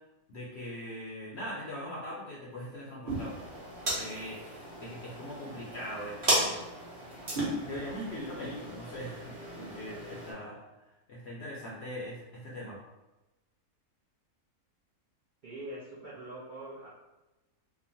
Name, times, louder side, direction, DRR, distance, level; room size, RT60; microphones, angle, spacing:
voice 1, 0.3-3.4 4.0-6.6 7.6-10.6 11.1-12.8, equal, 65° left, -6 dB, 0.6 m, -41 dB
sound 1, 3.0-10.3, right 1 dB, 45° right, 0.8 m, -35 dB
voice 2, 15.4-16.9, right 1 dB, 75° right, -8 dB, 0.4 m, -43 dB
2.9 x 2.1 x 2.6 m, 1.0 s
omnidirectional pair, 1.6 m